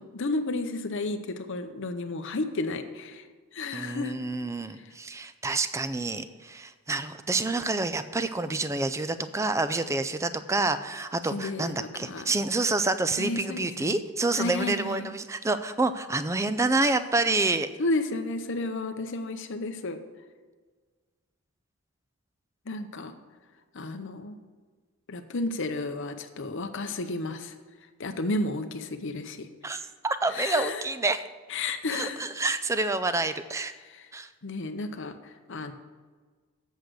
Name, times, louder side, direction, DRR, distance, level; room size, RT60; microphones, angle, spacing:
voice 1, 0.0-3.3 3.5-4.1 11.3-12.3 13.2-14.0 14.4-15.1 17.8-20.0 22.7-23.2 23.7-24.4 25.1-27.5 28.0-29.5 30.3-30.8 31.5-32.3 33.9-34.1 34.4-35.7, left 2 dB, 60° left, 8 dB, 0.7 m, -32 dB
voice 2, 3.7-17.7 29.6-31.2 31.9-33.7 34.1-34.3, right 3 dB, 15° right, 12 dB, 0.4 m, -28 dB
8.2 x 6.5 x 6.3 m, 1.4 s
head